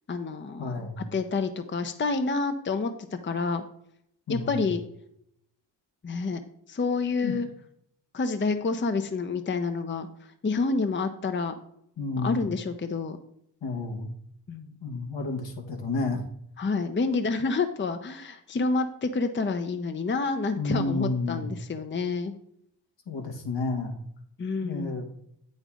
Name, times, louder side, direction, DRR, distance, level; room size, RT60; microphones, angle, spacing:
voice 1, 0.1-3.6 4.3-4.8 6.0-6.4 6.7-7.5 8.1-11.6 12.2-13.2 14.5-14.8 16.6-22.3 24.4-25.1, left 4 dB, 25° left, 8 dB, 0.7 m, -28 dB
voice 2, 0.6-1.0 4.3-4.7 7.2-7.3 12.0-12.4 13.6-14.1 14.8-16.2 20.6-21.5 23.1-23.9 24.6-25.0, left 3 dB, 70° left, 1 dB, 1.4 m, -30 dB
8.1 x 5.4 x 3.7 m, 0.74 s
supercardioid pair, 45°, 45 cm